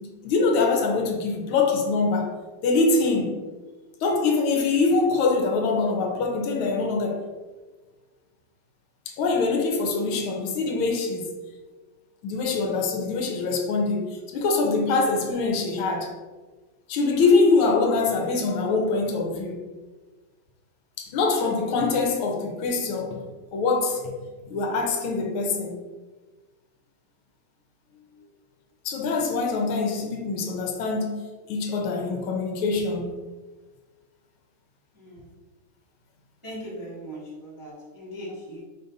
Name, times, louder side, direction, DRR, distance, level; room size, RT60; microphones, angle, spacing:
voice 1, 0.0-2.3 2.6-3.4 4.0-7.2 9.1-11.3 12.2-16.1 16.9-19.6 21.0-23.2 23.5-24.1 24.5-25.7 28.8-31.2 31.5-33.1 37.7-37.8, left 3 dB, 85° left, 1.6 m, -24 dB
voice 2, 34.9-35.3 36.4-38.6, equal, 20° right, 0.7 m, -39 dB
5.1 x 2.5 x 3.9 m
omnidirectional pair, 2.3 m